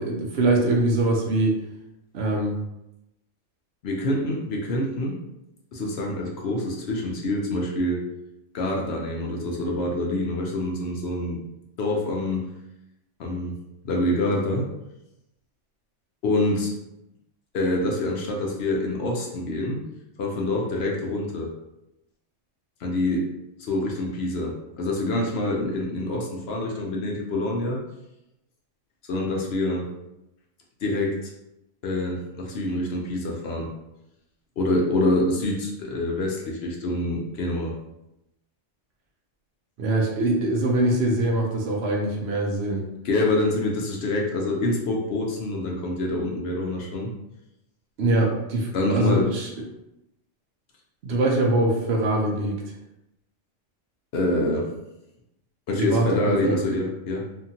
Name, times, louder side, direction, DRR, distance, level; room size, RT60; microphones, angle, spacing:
voice 1, 0.0-1.6 2.1-2.6 39.8-42.8 48.0-49.5 51.0-52.6 55.8-56.6, right 1 dB, 65° right, 0 dB, 0.8 m, -23 dB
voice 2, 3.8-5.2 5.7-8.1 8.5-11.4 11.8-12.5 13.2-13.6 13.8-14.7 16.2-16.7 17.5-19.8 20.2-21.5 22.8-23.3 23.6-27.8 29.1-29.9 30.8-31.2 31.8-33.7 34.6-37.7 43.0-47.1 48.7-49.3 54.1-54.7 55.7-57.3, left 1 dB, 65° left, -1 dB, 0.8 m, -26 dB
2.8 x 2.5 x 2.7 m, 0.88 s
omnidirectional pair, 1.3 m